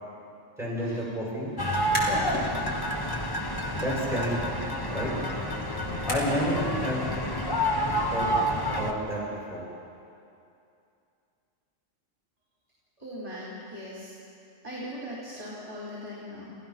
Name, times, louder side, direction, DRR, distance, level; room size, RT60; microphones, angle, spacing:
voice 1, 0.6-1.5 1.9-2.3 3.7-4.6 4.9-5.1 6.1-7.1 8.1-8.3 8.7-9.6, equal, ahead, -6 dB, 7.1 m, -30 dB
sound 1, 1.6-8.9, equal, 20° left, 1.2 m, -29 dB
sound 2, 1.8-2.5 2.9-6.6, left 1 dB, 80° left, 3.6 m, -39 dB
voice 2, 13.0-14.2 14.6-16.6, equal, 30° right, -6 dB, 3.9 m, -39 dB
29.5 x 15.0 x 6.0 m, 2.6 s
omnidirectional pair, 1.3 m